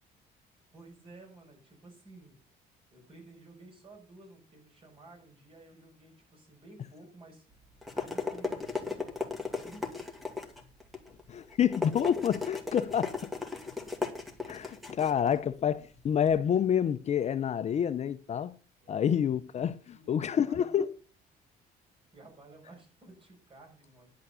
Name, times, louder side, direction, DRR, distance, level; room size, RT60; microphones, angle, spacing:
voice 1, 0.7-2.4 2.7-7.5 8.0-9.9 18.8-19.2 19.9-20.7 22.1-24.1, right 2 dB, 30° right, 5.8 m, -53 dB
sound 1, 7.5-16.4, left 4 dB, ahead, 2.0 m, -37 dB
voice 2, 11.3-13.2 14.5-18.5 18.9-20.9, left 8 dB, 40° left, 0.6 m, -28 dB
10.5 x 6.3 x 6.9 m
cardioid pair, 110°, 17 cm